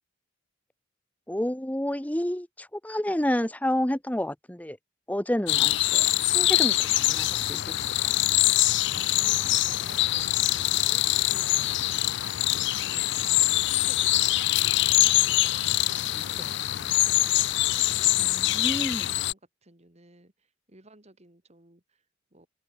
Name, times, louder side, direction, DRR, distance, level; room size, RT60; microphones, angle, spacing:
voice 1, 1.3-4.8 5.1-7.9 16.4-16.5 18.2-19.1, left 1 dB, 10° left, 1.1 m, -30 dB
sound 1, 5.5-19.3, left 16 dB, 60° left, 0.5 m, -24 dB
voice 2, 8.9-11.9 12.7-22.0 22.3-22.5, right 1 dB, 35° right, 3.1 m, -54 dB
open air
head